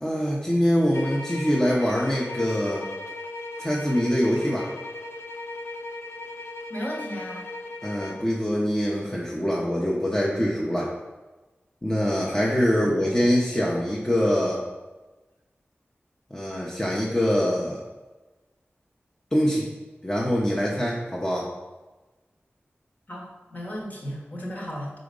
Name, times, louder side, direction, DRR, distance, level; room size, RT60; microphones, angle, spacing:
voice 1, 0.0-2.9 3.6-4.7 7.8-10.9 11.8-14.6 16.3-17.8 19.3-19.7 20.0-21.5, equal, 15° left, -4 dB, 0.9 m, -24 dB
sound 1, 0.9-8.3, left 2 dB, 85° left, 0.7 m, -37 dB
voice 2, 6.7-7.5 12.7-13.3 23.1-24.9, equal, 45° left, -2 dB, 1.5 m, -35 dB
4.9 x 4.0 x 5.2 m, 1.2 s
wide cardioid pair, 65°, 4 cm